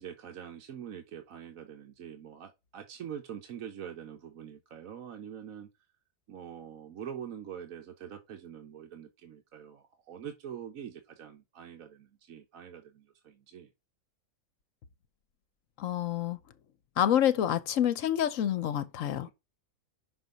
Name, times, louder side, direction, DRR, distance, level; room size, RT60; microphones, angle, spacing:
voice 1, 0.0-5.7 6.3-13.7 19.2-19.3, right 9 dB, 75° right, 1.3 m, -44 dB
voice 2, 15.8-16.4 17.0-19.3, left 10 dB, 70° left, 1.1 m, -27 dB
6.0 x 4.4 x 5.2 m
omnidirectional pair, 1.4 m